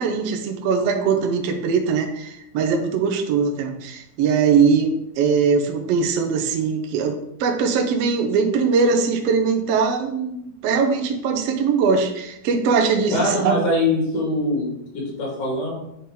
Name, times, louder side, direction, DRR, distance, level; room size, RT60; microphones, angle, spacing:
voice 1, 0.0-13.6, right 5 dB, 85° right, 4 dB, 1.4 m, -21 dB
voice 2, 13.1-14.7 14.9-15.7, left 1 dB, 65° left, -4 dB, 3.7 m, -22 dB
9.7 x 4.2 x 3.8 m, 0.81 s
omnidirectional pair, 3.9 m